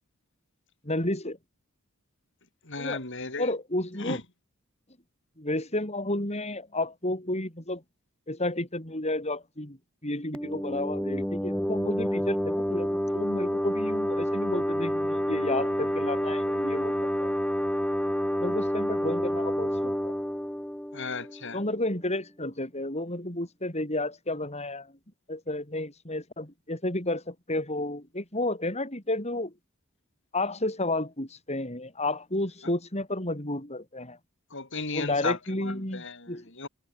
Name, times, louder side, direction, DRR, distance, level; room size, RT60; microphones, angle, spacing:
voice 1, 0.8-1.4 2.8-3.0 3.4-4.2 5.4-7.8 8.3-9.8 10.0-16.9 17.2-17.3 18.4-20.1 21.5-24.9 25.3-29.5 30.3-34.2 34.9-36.4, left 1 dB, 30° left, 6.9 m, -31 dB
voice 2, 2.7-3.5 4.0-4.2 20.9-21.6 34.5-36.7, left 3 dB, 55° left, 7.0 m, -35 dB
sound 1, 10.3-21.8, equal, 5° left, 2.9 m, -29 dB
head